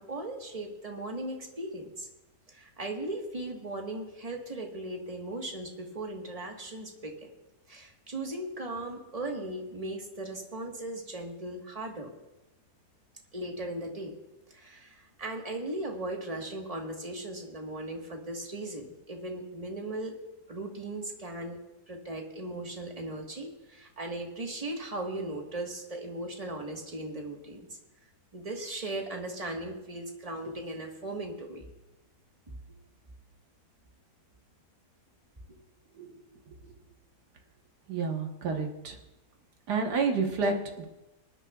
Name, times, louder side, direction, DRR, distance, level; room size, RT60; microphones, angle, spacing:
voice 1, 0.0-2.1 2.5-7.3 7.7-12.1 13.3-14.1 14.5-20.2 20.5-21.6 21.9-27.7 28.3-31.6 35.5-35.6, right 1 dB, 25° right, 1 dB, 1.4 m, -38 dB
voice 2, 37.9-39.0 39.7-40.9, right 4 dB, 80° right, 3 dB, 1.8 m, -29 dB
25.0 x 9.8 x 2.4 m, 0.99 s
omnidirectional pair, 1.7 m